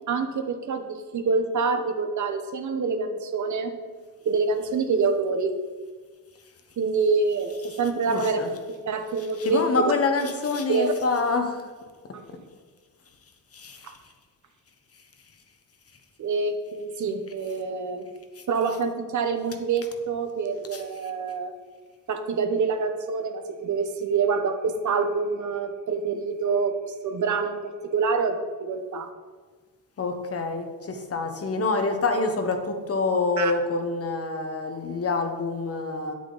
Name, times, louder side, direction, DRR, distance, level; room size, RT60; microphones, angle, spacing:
voice 1, 0.1-3.7 4.2-5.5 6.8-8.4 8.9-9.9 10.7-10.9 12.1-12.2 13.8-13.9 16.2-18.1 18.5-21.5 22.1-26.8 27.0-29.1 33.4-33.5, right 4 dB, 60° right, 7 dB, 1.0 m, -26 dB
voice 2, 8.1-8.5 9.4-11.6 13.5-13.9 20.7-20.8 30.0-36.1, left 3 dB, 45° left, 5 dB, 1.2 m, -26 dB
9.8 x 8.6 x 4.0 m, 1.5 s
cardioid pair, 130°, 34 cm